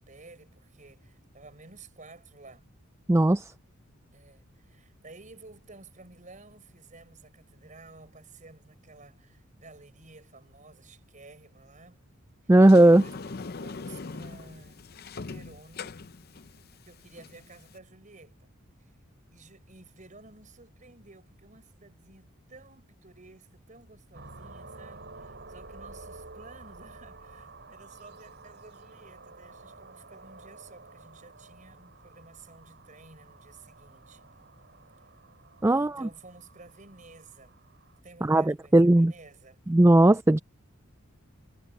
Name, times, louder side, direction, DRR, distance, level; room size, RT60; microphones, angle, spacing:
voice 1, 0.0-2.7 4.1-12.0 12.4-12.5 12.8-13.3 13.6-14.9 15.3-16.0 16.5-16.6 16.8-18.5 18.8-19.0 19.3-34.2 34.9-35.1 35.6-37.6 38.0-39.6, right 3 dB, 40° right, 5.0 m, -53 dB
voice 2, 3.1-3.4 12.5-13.0 35.6-36.1 38.2-39.1 39.7-40.4, right 1 dB, 15° right, 0.4 m, -18 dB
Sliding door, 12.6-17.8, left 4 dB, 50° left, 0.6 m, -41 dB
sound 1, 24.1-38.0, right 3 dB, 55° right, 7.3 m, -50 dB
head